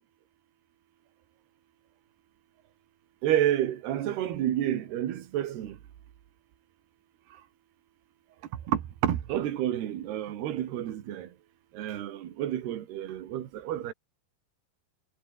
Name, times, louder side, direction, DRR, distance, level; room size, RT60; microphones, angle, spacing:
voice 1, 3.2-5.8 8.7-11.3 11.8-13.9, right 12 dB, 60° right, 3.7 m, -29 dB
omnidirectional pair, 5.6 m